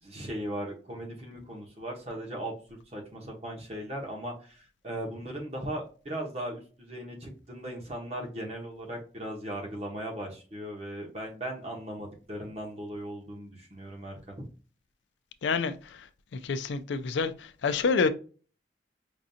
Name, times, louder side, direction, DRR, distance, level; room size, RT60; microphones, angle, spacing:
voice 1, 0.0-2.5 2.9-14.5, right 1 dB, 35° right, 1.1 m, -38 dB
voice 2, 15.4-15.7 16.4-17.3 17.6-18.1, left 4 dB, 90° left, 0.4 m, -26 dB
5.2 x 2.5 x 2.7 m
head